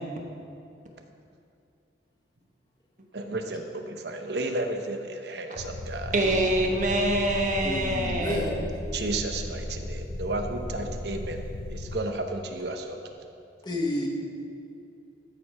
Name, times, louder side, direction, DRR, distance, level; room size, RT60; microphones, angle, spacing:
voice 1, 3.1-6.1 8.9-11.4 11.7-13.0, right 2 dB, 70° right, 5 dB, 0.8 m, -33 dB
sound 1, 5.6-12.0, left 1 dB, 55° left, 0.6 m, -36 dB
voice 2, 6.1-8.6, right 1 dB, 45° right, 1 dB, 1.1 m, -25 dB
voice 3, 7.6-8.6 13.6-14.1, left 1 dB, 25° left, -1 dB, 1.1 m, -30 dB
13.0 x 4.8 x 5.7 m, 2.5 s
head